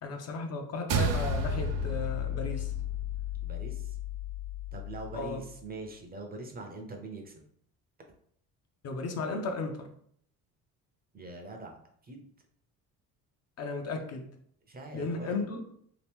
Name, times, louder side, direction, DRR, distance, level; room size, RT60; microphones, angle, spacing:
voice 1, 0.0-2.7 5.1-5.4 8.8-9.9 13.6-14.3 14.9-15.6, left 3 dB, 45° left, 4 dB, 0.6 m, -35 dB
sound 1, 0.9-5.5, left 2 dB, 70° right, 0.5 m, -33 dB
voice 2, 3.4-4.0 4.7-7.3 11.1-11.8 12.0-12.3 14.7-15.4, right 2 dB, 25° right, 3 dB, 0.6 m, -43 dB
2.9 x 2.4 x 3.5 m, 0.64 s
cardioid pair, 105°, 35 cm